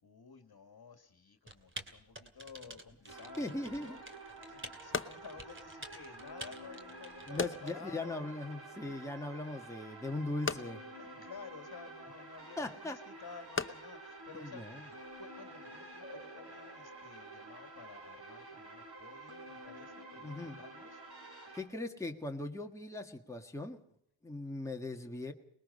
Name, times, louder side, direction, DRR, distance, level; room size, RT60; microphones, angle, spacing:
voice 1, 0.0-4.0 4.5-8.3 11.0-14.6 15.2-21.0, left 5 dB, 50° left, 8 dB, 1.9 m, -53 dB
Typing, 1.5-7.7, right 2 dB, 25° right, 2.4 m, -50 dB
voice 2, 3.1-4.0 7.3-10.8 12.6-13.0 14.3-14.8 20.2-20.6 21.5-23.8 24.2-25.3, left 2 dB, 5° left, 2 dB, 1.6 m, -39 dB
sound 1, 3.1-21.6, right 2 dB, 55° right, 7.1 m, -50 dB
sound 2, 3.9-15.2, left 4 dB, 25° left, 0.9 m, -44 dB
24.0 x 20.5 x 5.5 m, 0.69 s
wide cardioid pair, 100°, 47 cm